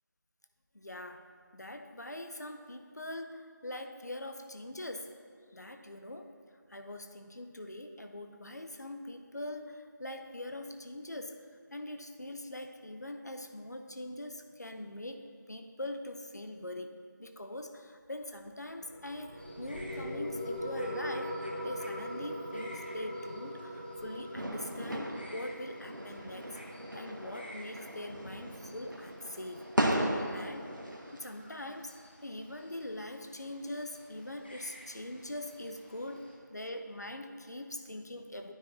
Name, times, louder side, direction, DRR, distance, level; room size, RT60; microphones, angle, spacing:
voice 1, 0.7-1.2 1.5-5.1 5.5-6.3 6.7-11.4 11.7-16.9 17.2-26.6 26.9-29.7 30.1-38.5, left 1 dB, 55° left, 6 dB, 0.6 m, -42 dB
sound 1, 18.8-29.8, equal, 15° right, 0.9 m, -42 dB
sound 2, 19.4-36.4, equal, 30° left, 0.8 m, -55 dB
sound 3, 24.3-31.2, right 1 dB, 75° right, 1.2 m, -36 dB
12.5 x 4.4 x 3.1 m, 2.2 s
figure-of-eight pair, 175°, 11 cm